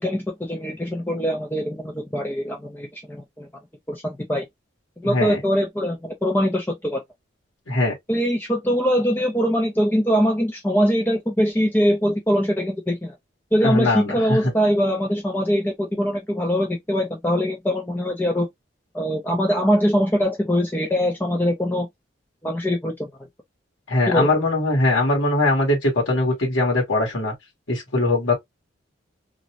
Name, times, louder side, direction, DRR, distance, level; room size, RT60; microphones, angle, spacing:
voice 1, 0.0-3.5 3.9-4.5 5.0-7.0 8.1-13.1 13.5-18.5 18.9-21.9 22.4-23.1 24.1-24.3, equal, 10° left, 0.4 m, -22 dB
voice 2, 5.0-5.4 7.7-7.9 13.6-14.5 23.9-27.3 27.7-28.3, left 2 dB, 75° left, 1.1 m, -21 dB
2.5 x 2.1 x 2.7 m
head